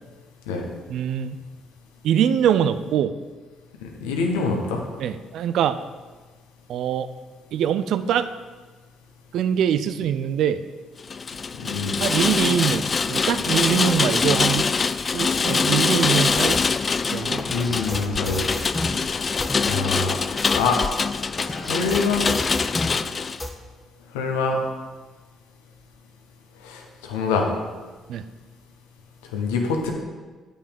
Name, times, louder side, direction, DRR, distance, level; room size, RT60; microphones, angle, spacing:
voice 1, 0.9-1.4 2.0-3.1 5.0-5.8 6.7-7.1 7.5-8.3 9.3-10.6 12.0-14.7 15.1-16.6 17.1-17.5 18.8-18.9 28.1-28.2, right 9 dB, 70° right, 12 dB, 0.4 m, -23 dB
voice 2, 3.8-4.8 11.6-12.0 17.5-18.4 18.8-19.1 19.7-20.2 20.5-20.8 21.5-22.3 24.1-24.6 26.6-27.5 29.3-29.9, left 4 dB, 85° left, 2 dB, 1.2 m, -25 dB
Rain, 11.0-23.4, left 5 dB, 40° left, 0.3 m, -24 dB
sound 1, 15.5-15.8 16.4-19.0 19.4-19.8 20.3-23.0 23.4-23.5, left 1 dB, 20° left, 1.3 m, -32 dB
8.6 x 5.4 x 5.2 m, 1.3 s
hypercardioid pair, 50°, 0 cm